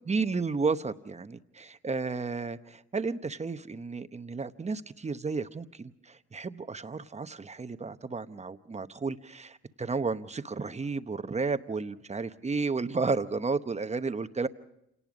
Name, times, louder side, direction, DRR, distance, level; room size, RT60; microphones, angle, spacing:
voice 1, 0.1-14.5, right 4 dB, 20° right, 1.0 m, -32 dB
28.0 x 18.5 x 5.1 m
cardioid pair, 90°, 30 cm